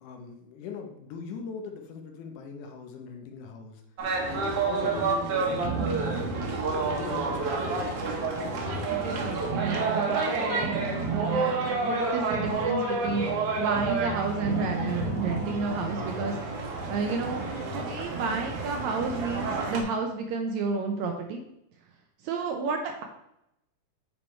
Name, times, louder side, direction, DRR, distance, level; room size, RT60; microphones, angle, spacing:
voice 1, 0.0-3.8 4.3-8.1, left 5 dB, 75° left, 3 dB, 2.3 m, -41 dB
sound 1, 4.0-19.8, right 4 dB, 60° right, 1.8 m, -29 dB
sound 2, 6.9-18.2, left 7 dB, 50° left, 3.1 m, -46 dB
voice 2, 8.9-10.7 11.1-13.3 13.6-16.4 16.9-17.4 17.7-21.4 22.2-23.0, right 4 dB, 75° right, 3 dB, 1.7 m, -31 dB
8.5 x 4.3 x 4.4 m, 0.82 s
omnidirectional pair, 3.7 m